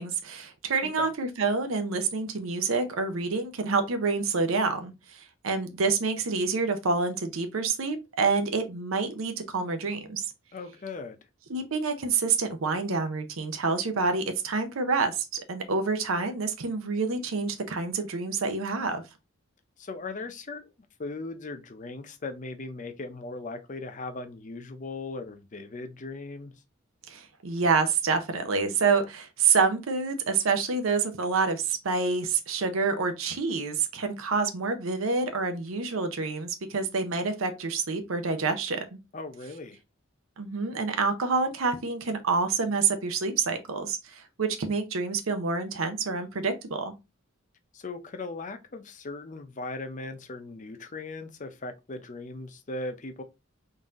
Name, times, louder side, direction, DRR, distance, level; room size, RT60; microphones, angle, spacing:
voice 1, 0.0-10.3 11.5-19.0 27.1-39.0 40.4-46.9, right 4 dB, 90° right, 0.6 m, -27 dB
voice 2, 10.5-11.2 19.8-20.7 21.0-26.5 39.1-39.8 47.7-53.2, left 3 dB, 40° left, 0.6 m, -38 dB
4.0 x 2.7 x 3.6 m
head